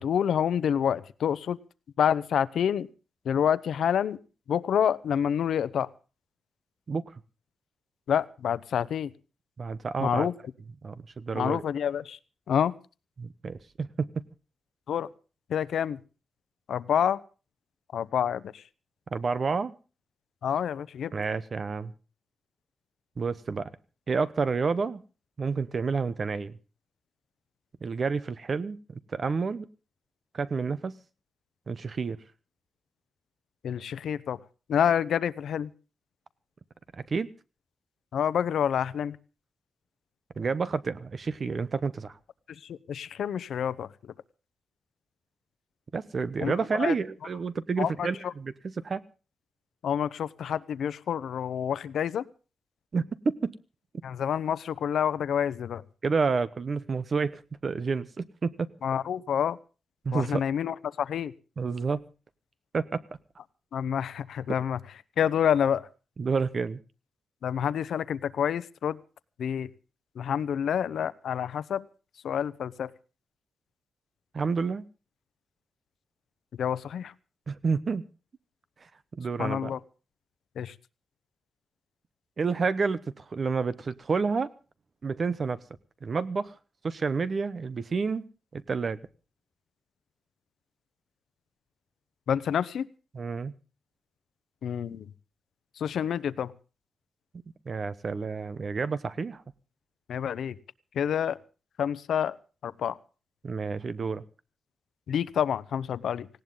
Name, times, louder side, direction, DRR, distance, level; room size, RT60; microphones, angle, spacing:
voice 1, 0.0-1.6 2.0-2.9 3.2-4.2 4.5-5.9 8.1-9.1 10.0-10.3 11.3-12.2 12.5-12.7 14.9-15.1 15.5-16.0 16.7-17.2 17.9-18.6 20.4-21.1 33.6-34.4 34.7-35.7 38.1-39.2 42.6-43.9 46.4-46.9 47.8-48.3 49.8-52.2 54.0-55.8 58.8-59.6 60.1-61.3 63.7-64.8 65.2-65.9 67.4-69.0 69.4-69.7 70.2-71.8 72.2-72.9 76.5-77.1 79.4-79.8 80.6-80.7 92.3-92.9 94.6-95.1 95.8-96.5 100.1-100.6 100.9-101.4 101.8-102.4 102.6-103.0 105.1-106.3, left 8 dB, 75° left, 16 dB, 0.8 m, -28 dB
voice 2, 9.6-10.3 10.8-11.6 13.2-14.2 19.1-19.7 21.1-21.9 23.2-23.7 24.1-25.0 25.4-26.6 27.8-28.8 29.1-29.7 30.3-30.9 31.7-32.2 37.1-37.3 40.4-42.2 45.9-49.0 52.9-53.5 56.0-58.7 60.0-60.4 61.6-62.0 62.7-63.0 66.2-66.8 74.3-74.8 77.5-78.0 79.2-79.7 82.4-84.5 85.0-85.6 86.0-86.5 86.8-88.3 88.5-89.0 93.1-93.5 97.7-99.4 103.4-104.2, right 4 dB, 35° right, 15 dB, 0.9 m, -29 dB
18.5 x 17.5 x 3.9 m, 0.35 s
wide cardioid pair, 165°, 0 cm